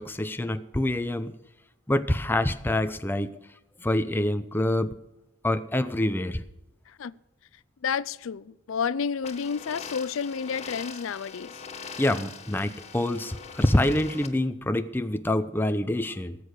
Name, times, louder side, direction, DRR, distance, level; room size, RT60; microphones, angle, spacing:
voice 1, 0.0-1.3 1.9-3.3 3.8-4.9 5.4-6.4 12.0-16.4, left 1 dB, 10° left, 0.6 m, -26 dB
voice 2, 7.8-11.6, left 6 dB, 80° left, 0.5 m, -30 dB
sound 1, 9.2-14.3, left 5 dB, 35° left, 1.3 m, -42 dB
19.0 x 8.4 x 6.4 m
head